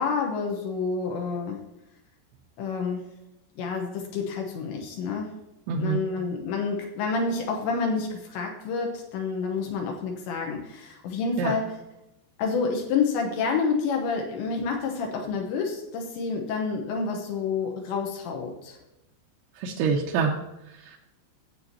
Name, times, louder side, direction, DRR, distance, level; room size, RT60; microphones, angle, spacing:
voice 1, 0.0-1.6 2.6-3.0 3.6-5.4 5.8-11.7 12.4-18.8, left 5 dB, 80° left, 1 dB, 3.3 m, -28 dB
voice 2, 5.7-6.1 11.4-11.5 19.5-20.4 20.6-21.0, right 5 dB, 80° right, -1 dB, 2.7 m, -26 dB
15.0 x 7.7 x 2.9 m, 0.91 s
omnidirectional pair, 5.2 m